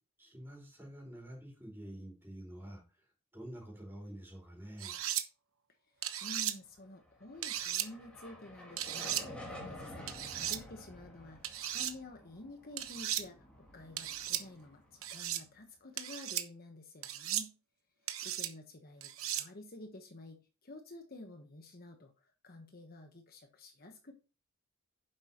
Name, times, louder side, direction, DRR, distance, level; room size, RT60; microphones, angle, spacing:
voice 1, 0.2-3.1 3.3-5.0, right 1 dB, 10° right, -1 dB, 4.6 m, -48 dB
sound 1, 4.8-5.2 6.0-6.5 7.4-7.9 8.8-9.2 10.1-10.6 11.4-11.9 12.8-13.2 14.0-14.4 15.0-15.4 16.0-16.4 17.0-17.5 18.1-18.5 19.0-19.5, right 11 dB, 70° right, 1.0 m, -36 dB
voice 2, 6.2-17.5 18.2-24.1, left 2 dB, 45° left, 4 dB, 1.1 m, -51 dB
sound 2, 7.1-15.5, left 1 dB, 5° left, 2.7 m, -51 dB
9.8 x 7.5 x 3.0 m, 0.32 s
head